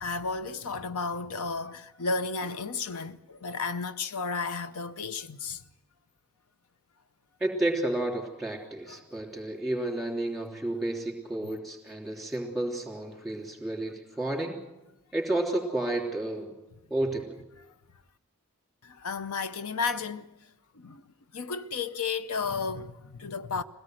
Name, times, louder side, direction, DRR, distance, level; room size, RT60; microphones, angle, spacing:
voice 1, 0.0-5.6 8.9-9.0 18.8-20.3 20.8-21.0 21.3-23.6, left 4 dB, 85° left, 0.8 m, -33 dB
voice 2, 7.4-14.6 15.1-16.5 16.9-17.4, right 1 dB, ahead, 3.3 m, -31 dB
22.0 x 17.5 x 7.8 m
head